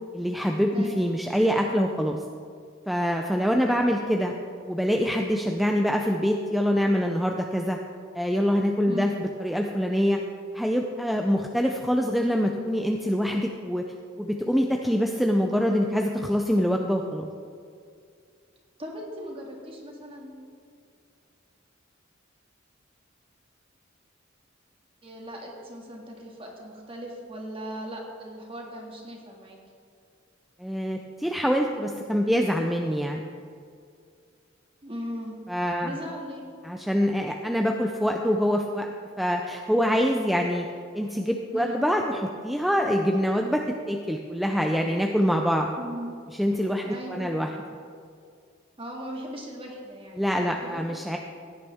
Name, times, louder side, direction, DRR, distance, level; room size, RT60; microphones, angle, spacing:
voice 1, 0.1-2.2 2.9-4.3 4.7-7.8 8.1-10.2 10.5-13.8 14.2-17.3 30.6-33.2 35.5-36.0 36.6-38.9 39.2-40.7 40.9-45.7 46.3-47.5 50.2-51.2, equal, ahead, 2 dB, 0.5 m, -25 dB
voice 2, 0.7-1.0 3.7-4.0 8.9-9.1 18.8-20.4 25.0-29.6 34.8-35.4 35.8-36.4 41.5-41.8 45.8-46.1 46.8-47.4 48.8-50.9, equal, 30° right, -1 dB, 2.0 m, -38 dB
16.5 x 9.8 x 3.5 m, 2.3 s
head